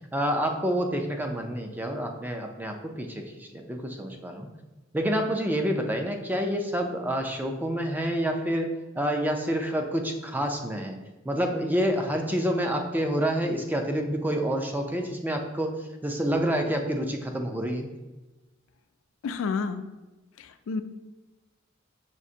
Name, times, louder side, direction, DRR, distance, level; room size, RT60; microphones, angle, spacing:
voice 1, 0.1-4.5 4.9-8.7 9.0-11.0 11.3-15.8 16.0-17.9, equal, 10° right, 3 dB, 0.3 m, -28 dB
voice 2, 19.2-19.8 20.4-20.8, left 5 dB, 85° left, 10 dB, 0.3 m, -30 dB
6.0 x 2.5 x 2.7 m, 1.1 s
head